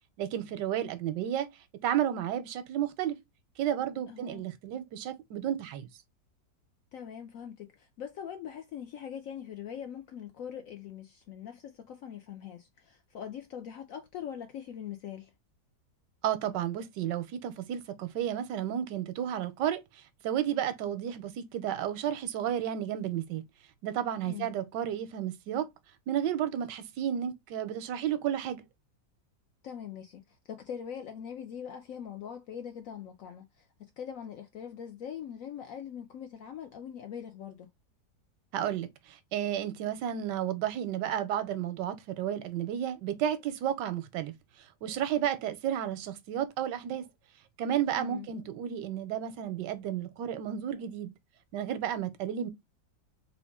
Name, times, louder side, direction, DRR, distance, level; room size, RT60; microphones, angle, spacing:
voice 1, 0.2-1.5 1.8-3.2 3.6-5.9 16.2-23.4 23.8-25.7 26.1-28.6 38.5-44.3 44.8-47.1 47.6-51.1 51.5-52.5, right 10 dB, 85° right, 1.2 m, -32 dB
voice 2, 4.1-4.5 6.9-15.3 24.2-24.5 29.6-37.7 48.0-48.3, left 8 dB, 75° left, 0.8 m, -42 dB
3.7 x 2.4 x 3.5 m
omnidirectional pair, 1.8 m